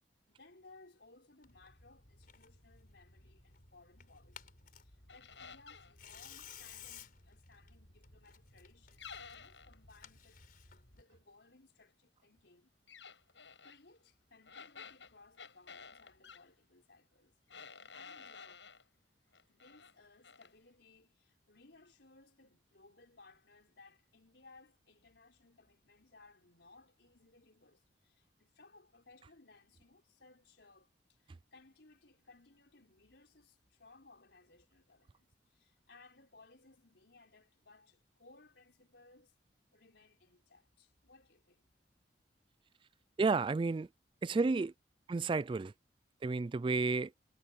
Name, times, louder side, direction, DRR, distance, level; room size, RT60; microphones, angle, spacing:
voice 1, 0.3-12.7 13.6-17.4 17.9-18.7 19.5-39.3 39.7-41.7, left 3 dB, 70° left, 4.5 m, -63 dB
Tearing, 1.4-11.0, left 6 dB, 50° left, 4.4 m, -57 dB
sound 1, 5.1-5.9 9.0-9.8 12.9-13.8 14.5-16.4 17.5-18.8 19.3-19.9 20.2-20.5, left 6 dB, 85° left, 6.6 m, -52 dB
voice 2, 43.2-43.9 44.2-44.7 45.1-45.7 46.2-47.1, right 3 dB, 25° right, 0.3 m, -31 dB
head